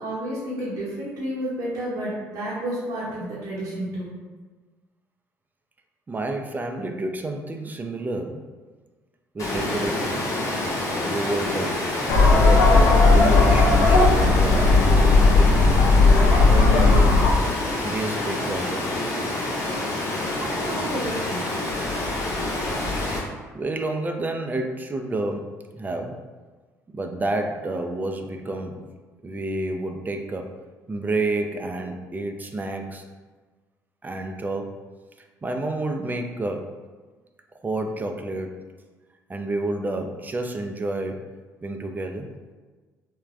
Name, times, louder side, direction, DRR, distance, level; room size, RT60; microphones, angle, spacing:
voice 1, 0.0-4.1 20.3-21.5, right 1 dB, 65° right, -8 dB, 0.8 m, -31 dB
voice 2, 6.1-8.5 9.3-10.3 11.0-11.9 12.3-15.6 16.5-17.3 17.8-19.1 23.5-26.2 26.9-28.9 29.2-30.5 30.9-33.0 34.0-34.7 35.4-36.8 37.6-38.7 39.3-41.2 41.6-42.3, right 2 dB, 25° right, 4 dB, 0.4 m, -29 dB
Water, 9.4-23.2, left 2 dB, 50° left, 0.8 m, -27 dB
sound 1, 12.1-17.3, left 3 dB, 80° left, 0.4 m, -16 dB
3.3 x 2.1 x 2.4 m, 1.3 s
supercardioid pair, 70°, 7 cm